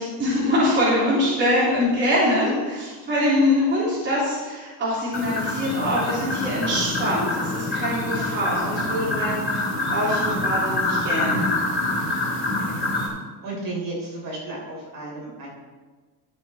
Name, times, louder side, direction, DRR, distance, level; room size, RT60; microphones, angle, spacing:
voice 1, 0.0-11.6, left 1 dB, 25° right, -9 dB, 3.0 m, -23 dB
sound 1, 5.1-13.1, left 2 dB, 25° left, 2.8 m, -26 dB
voice 2, 12.2-13.2 13.4-15.5, right 2 dB, 45° right, -4 dB, 3.6 m, -35 dB
12.5 x 7.0 x 4.2 m, 1.4 s
cardioid pair, 165°, 47 cm